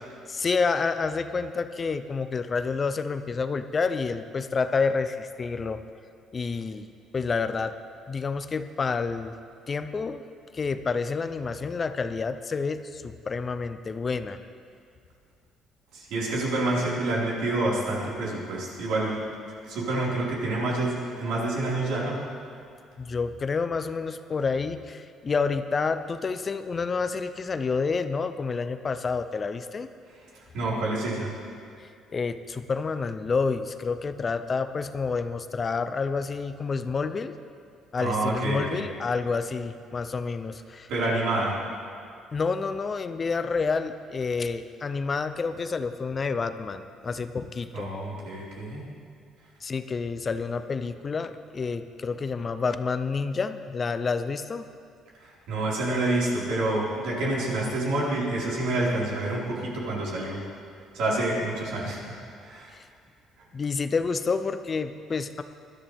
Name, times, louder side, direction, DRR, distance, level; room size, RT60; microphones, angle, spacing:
voice 1, 0.3-5.8 6.3-6.9 7.1-7.8 8.1-9.4 9.7-10.3 10.5-14.4 23.0-29.9 31.8-37.3 37.9-40.9 42.3-47.9 49.6-54.7 62.7-62.9 63.5-65.4, left 4 dB, 25° left, 10 dB, 0.5 m, -29 dB
voice 2, 15.9-19.2 19.6-22.2 30.5-31.3 38.0-38.8 40.9-41.6 47.7-48.8 55.2-60.4 60.9-62.7, right 2 dB, 75° right, -6 dB, 4.5 m, -28 dB
20.5 x 13.0 x 3.4 m, 2.3 s
cardioid pair, 145°, 0 cm